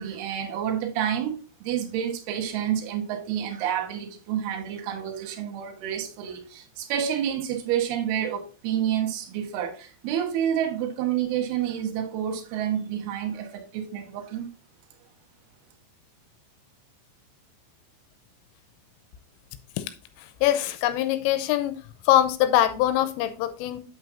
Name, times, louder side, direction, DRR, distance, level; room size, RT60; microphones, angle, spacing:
voice 1, 0.0-1.3 1.6-14.5, right 9 dB, 70° right, 2.6 m, -29 dB
voice 2, 20.2-23.8, left 13 dB, 85° left, 3.1 m, -23 dB
8.7 x 7.6 x 2.6 m
omnidirectional pair, 6.0 m